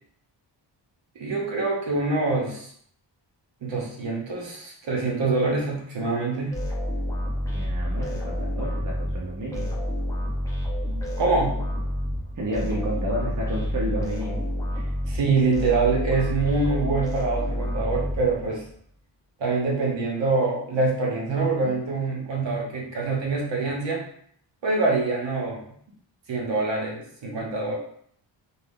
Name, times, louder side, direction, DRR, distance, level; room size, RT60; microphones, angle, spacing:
voice 1, 1.2-2.7 3.6-6.6 11.2-11.6 15.1-18.6 19.4-24.0 24.6-25.6 26.3-27.7, right 3 dB, 75° right, -2 dB, 0.9 m, -25 dB
sound 1, 6.5-18.7, equal, 10° left, 0.5 m, -29 dB
voice 2, 7.5-9.7 12.4-14.5, equal, 45° right, -5 dB, 0.7 m, -31 dB
2.6 x 2.3 x 3.5 m, 0.65 s
wide cardioid pair, 175°, 45 cm